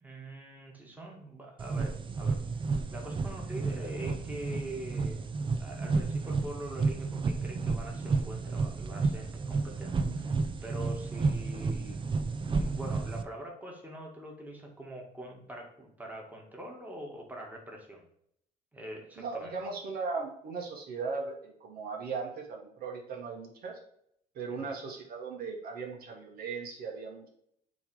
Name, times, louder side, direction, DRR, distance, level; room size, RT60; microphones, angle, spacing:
voice 1, 0.0-2.4 2.9-5.3 5.6-10.3 10.6-12.0 12.6-18.0 18.7-19.6 24.5-24.7, right 1 dB, 10° right, -1 dB, 1.8 m, -44 dB
sound 1, 1.6-13.2, right 4 dB, 30° right, 0.5 m, -31 dB
voice 2, 19.2-23.8 24.3-27.3, right 4 dB, 65° right, 0 dB, 1.5 m, -38 dB
7.1 x 3.3 x 4.8 m, 0.70 s
cardioid pair, 110°, 17 cm